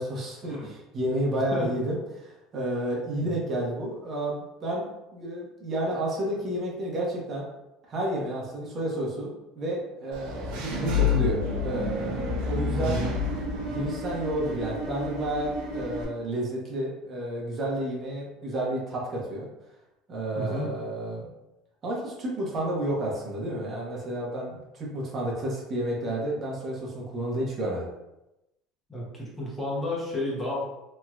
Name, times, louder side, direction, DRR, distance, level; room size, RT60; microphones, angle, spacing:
voice 1, 0.0-7.5 7.9-13.0 13.5-19.5 20.1-21.3 21.8-27.9, right 1 dB, 40° right, -3 dB, 1.1 m, -31 dB
voice 2, 1.3-1.7 3.2-3.4 12.8-13.1 20.4-20.7 28.9-30.6, left 1 dB, 15° left, -5 dB, 1.2 m, -32 dB
Engine / Mechanisms, 10.1-16.0, left 4 dB, 75° right, 0.7 m, -29 dB
3.2 x 2.8 x 2.4 m, 0.93 s
supercardioid pair, 100°, 0 cm